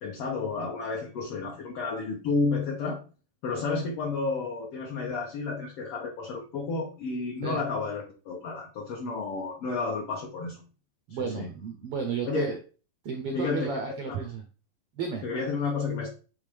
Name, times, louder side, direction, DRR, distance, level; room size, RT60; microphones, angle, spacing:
voice 1, 0.0-3.0 3.4-10.6 11.2-11.5 12.3-12.5 13.3-13.7 14.1-14.2 15.2-16.1, left 4 dB, 70° left, -1 dB, 1.4 m, -31 dB
voice 2, 11.1-12.6 13.0-14.4 15.0-15.2, right 5 dB, 75° right, 2 dB, 1.3 m, -32 dB
8.5 x 3.5 x 3.5 m, 0.36 s
omnidirectional pair, 3.8 m